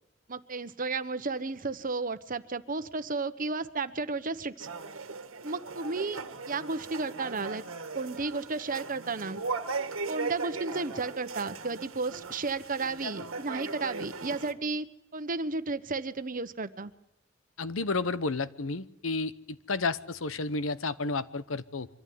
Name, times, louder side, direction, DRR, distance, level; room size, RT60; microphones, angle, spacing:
voice 1, 0.3-4.7 5.4-7.6 7.9-9.4 10.1-16.9, right 3 dB, 40° right, 11 dB, 1.1 m, -33 dB
sound 1, 4.6-14.5, right 4 dB, 90° right, 1.6 m, -38 dB
voice 2, 17.6-21.9, left 3 dB, 75° left, 14 dB, 1.0 m, -31 dB
24.5 x 14.5 x 9.5 m, 0.82 s
head